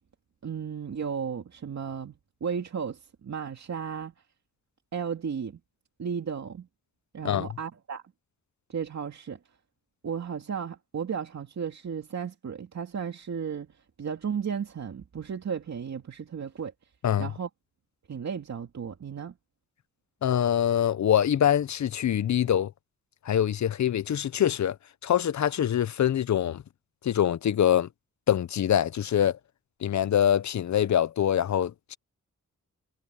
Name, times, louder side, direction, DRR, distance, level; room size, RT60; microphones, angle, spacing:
voice 1, 0.4-2.1 2.4-4.1 4.9-5.6 6.0-6.7 7.1-8.0 8.7-9.4 10.0-13.7 14.0-16.7 17.2-17.5 18.1-19.3, right 7 dB, 60° right, 2.5 m, -34 dB
voice 2, 20.2-22.7 23.3-24.8 25.0-26.6 27.0-27.9 28.3-29.4 29.8-32.0, left 10 dB, 65° left, 0.7 m, -24 dB
wide cardioid pair, 115°, 31 cm